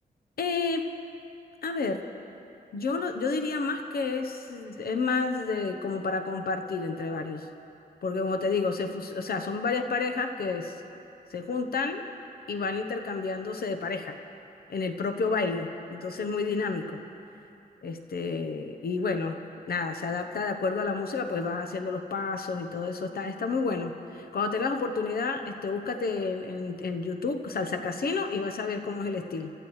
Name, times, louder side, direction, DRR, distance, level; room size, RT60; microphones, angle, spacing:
voice 1, 0.4-0.9 1.6-2.0 2.7-7.5 8.0-10.8 11.3-12.0 12.5-14.2 14.7-17.0 17.8-19.4 19.7-29.5, left 4 dB, 70° left, 7 dB, 0.9 m, -30 dB
26.0 x 14.5 x 3.1 m, 2.7 s
wide cardioid pair, 125°, 16 cm